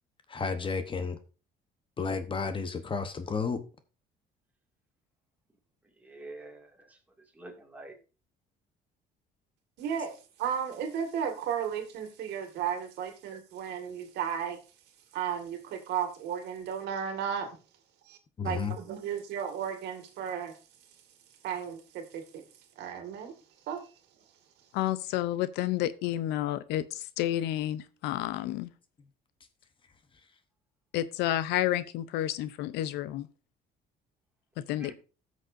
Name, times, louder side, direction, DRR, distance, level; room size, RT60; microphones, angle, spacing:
voice 1, 0.3-1.2 2.0-3.6 18.4-18.8, left 5 dB, 30° left, 1.0 m, -32 dB
voice 2, 6.0-7.0 7.3-8.0 34.8-34.9, right 2 dB, 10° right, 2.3 m, -46 dB
voice 3, 9.8-14.6 15.1-17.6 18.1-18.2 18.4-20.5 21.4-22.4 22.8-23.3 23.7-23.8, right 8 dB, 80° right, 2.0 m, -34 dB
voice 4, 24.7-28.7 30.9-33.3 34.6-34.9, left 13 dB, 90° left, 0.6 m, -30 dB
16.5 x 6.4 x 2.6 m
cardioid pair, 110°, 17 cm